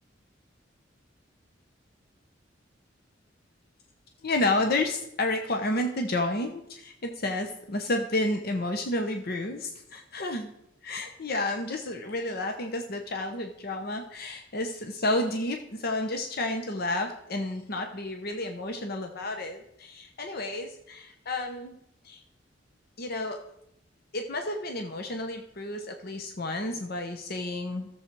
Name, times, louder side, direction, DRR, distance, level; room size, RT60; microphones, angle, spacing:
voice 1, 4.2-10.5 10.8-21.8 22.0-22.2 23.0-23.4 24.1-27.9, left 2 dB, 55° left, 5 dB, 0.9 m, -31 dB
14.0 x 7.3 x 4.6 m, 0.77 s
head